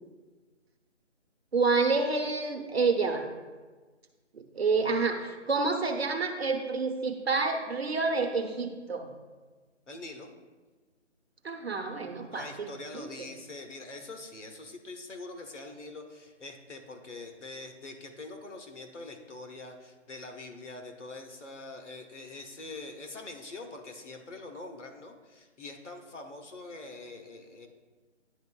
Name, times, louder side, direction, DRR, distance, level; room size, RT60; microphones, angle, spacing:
voice 1, 1.5-3.2 4.3-9.1 11.4-13.1, right 4 dB, 55° right, 4 dB, 0.9 m, -28 dB
voice 2, 9.9-10.3 12.3-27.7, left 2 dB, 75° left, 4 dB, 1.2 m, -44 dB
10.5 x 4.0 x 2.3 m, 1.3 s
figure-of-eight pair, 175°, 36 cm